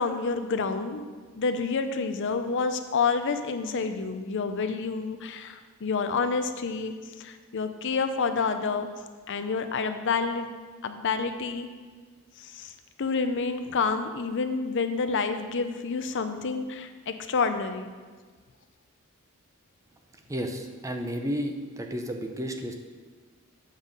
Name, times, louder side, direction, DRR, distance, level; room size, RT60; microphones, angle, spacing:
voice 1, 0.0-8.9 9.3-10.5 10.8-11.7 12.4-12.7 13.0-17.9, left 4 dB, 55° left, 8 dB, 0.6 m, -29 dB
voice 2, 20.3-22.7, equal, 15° right, 4 dB, 0.6 m, -32 dB
7.3 x 5.6 x 6.5 m, 1.5 s
head